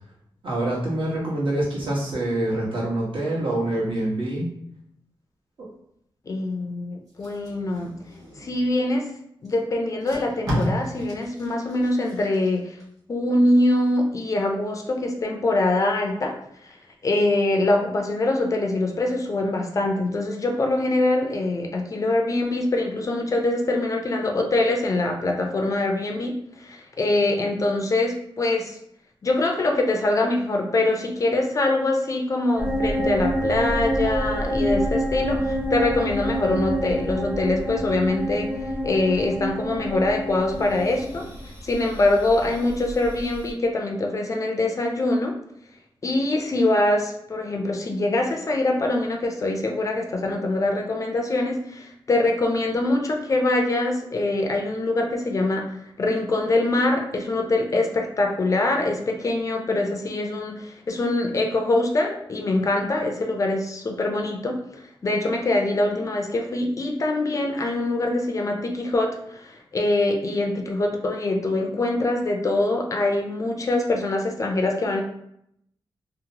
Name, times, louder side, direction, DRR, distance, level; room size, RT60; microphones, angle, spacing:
voice 1, 0.4-4.5 5.6-5.7, right 1 dB, 70° right, -6 dB, 1.1 m, -25 dB
voice 2, 6.3-8.0 8.4-9.1 9.4-12.8 13.1-16.4 17.0-28.8 29.2-38.5 38.8-41.3 41.6-45.3 46.0-75.0, left 2 dB, 35° left, 2 dB, 0.3 m, -24 dB
Packing tape duct tape, 7.1-8.7 9.4-9.5 9.9-12.9 13.3-13.5, equal, 40° right, 1.3 m, -32 dB
sound 1, 32.6-43.5, equal, 25° right, 0.6 m, -27 dB
2.8 x 2.0 x 2.7 m, 0.74 s
wide cardioid pair, 135°, 9 cm